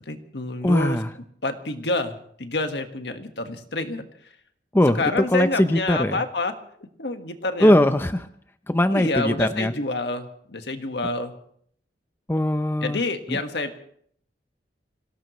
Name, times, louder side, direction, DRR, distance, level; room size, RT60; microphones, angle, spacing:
voice 1, 0.1-1.0 1.4-4.1 5.0-6.5 7.0-7.7 8.9-11.3 12.8-13.8, left 2 dB, 75° left, 6 dB, 1.6 m, -28 dB
voice 2, 0.6-1.1 4.7-5.0 5.3-6.2 7.6-8.3 8.7-9.7 12.3-13.0 13.3-13.4, left 1 dB, 15° left, 9 dB, 0.6 m, -20 dB
26.0 x 17.5 x 3.1 m, 0.64 s
head